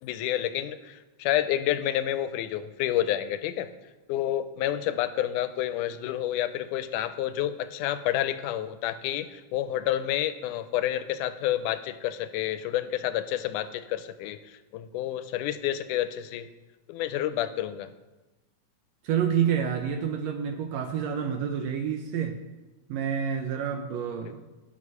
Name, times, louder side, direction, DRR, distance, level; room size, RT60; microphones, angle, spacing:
voice 1, 0.0-3.7 4.1-16.5 16.9-17.9 24.2-24.3, left 12 dB, 90° left, 12 dB, 2.1 m, -29 dB
voice 2, 19.0-22.3 22.9-24.4, right 8 dB, 75° right, 6 dB, 1.6 m, -28 dB
11.0 x 6.4 x 5.5 m, 1.1 s
omnidirectional pair, 3.6 m